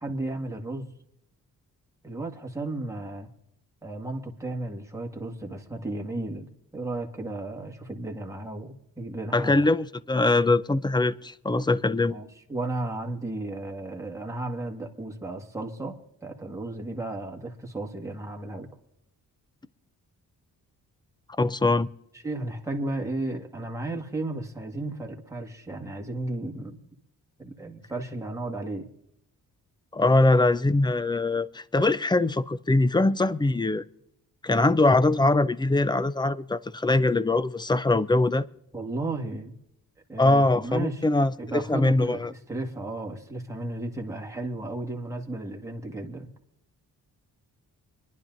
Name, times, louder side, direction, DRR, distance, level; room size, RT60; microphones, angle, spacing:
voice 1, 0.0-0.9 2.0-3.3 3.8-9.7 12.1-16.0 16.2-18.7 22.2-26.8 27.4-28.9 38.7-39.6 40.1-41.1 41.4-46.3, right 2 dB, 10° right, 1.7 m, -34 dB
voice 2, 9.3-12.2 21.4-21.9 29.9-33.8 34.4-38.4 40.2-42.3, left 2 dB, 10° left, 0.5 m, -22 dB
25.0 x 11.0 x 2.6 m
cardioid pair, 85°, 36 cm